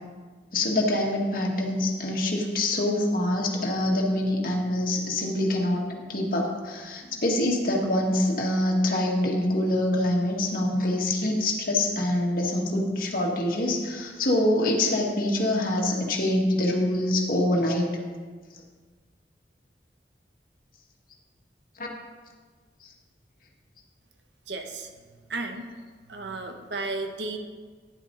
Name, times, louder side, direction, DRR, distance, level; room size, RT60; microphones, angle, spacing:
voice 1, 0.5-17.9 21.8-21.9 22.8-22.9, left 1 dB, 55° left, -1 dB, 2.0 m, -25 dB
voice 2, 24.5-24.9 25.3-25.7 26.1-27.4, right 3 dB, 85° right, 4 dB, 1.2 m, -33 dB
11.0 x 10.5 x 4.0 m, 1.5 s
head